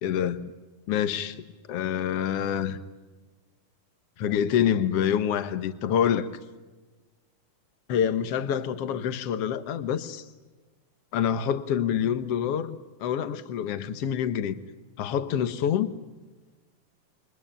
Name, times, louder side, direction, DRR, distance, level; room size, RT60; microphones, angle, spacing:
voice 1, 0.0-0.5 0.9-1.4 1.7-2.8 4.2-6.3 7.9-10.2 11.1-14.6 15.0-16.0, left 9 dB, 60° left, 1.6 m, -26 dB
28.0 x 23.5 x 8.8 m
omnidirectional pair, 4.2 m